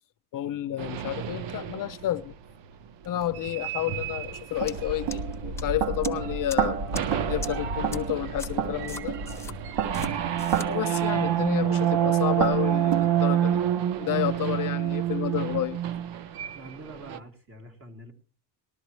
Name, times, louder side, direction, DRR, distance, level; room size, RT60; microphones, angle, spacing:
voice 1, 0.3-2.3 3.0-6.8 7.2-9.2 10.7-13.6 14.0-15.8, left 13 dB, 50° left, 0.6 m, -30 dB
sound 1, 0.8-2.1 3.3-5.8 6.2-6.5 6.9-17.2, right 11 dB, 90° right, 1.0 m, -28 dB
sound 2, 3.2-3.3 4.0-13.0, right 6 dB, 75° right, 1.8 m, -31 dB
sound 3, 4.7-4.8 5.1-5.6 6.0-6.1 6.5-6.6 6.9-7.0 7.4-7.5 7.9-8.0 8.4-8.5 8.9-9.5 9.9-10.1 10.4-10.7, left 3 dB, 5° left, 1.1 m, -39 dB
voice 2, 6.8-7.2 9.1-9.6 14.1-14.6 16.4-18.1, right 1 dB, 30° right, 3.1 m, -46 dB
19.5 x 13.0 x 3.2 m
cardioid pair, 155°, 43 cm